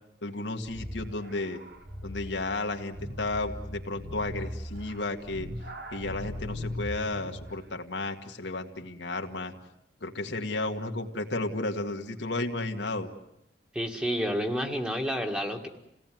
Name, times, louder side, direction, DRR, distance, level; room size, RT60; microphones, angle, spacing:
voice 1, 0.2-1.6 2.0-5.5 5.9-9.5 10.0-13.1, left 2 dB, 85° left, 4 dB, 2.0 m, -33 dB
sound 1, 0.7-7.5, left 1 dB, 60° right, 2.5 m, -39 dB
voice 2, 13.7-15.7, equal, 5° right, 3 dB, 1.9 m, -29 dB
28.0 x 18.0 x 9.3 m, 0.83 s
head